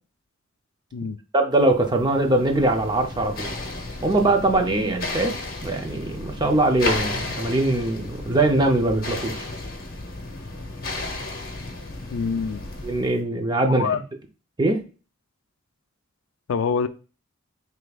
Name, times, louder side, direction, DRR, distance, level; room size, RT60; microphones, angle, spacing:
voice 1, 1.3-3.5 4.0-5.4 5.6-9.4 12.8-14.0 14.6-14.8, right 2 dB, 20° right, 4 dB, 0.5 m, -22 dB
sound 1, 1.7-13.2, left 2 dB, 45° left, 0.8 m, -33 dB
voice 2, 12.1-12.6 13.8-14.0 16.5-16.9, left 5 dB, 70° left, 10 dB, 0.4 m, -25 dB
5.1 x 3.4 x 2.3 m, 0.34 s
head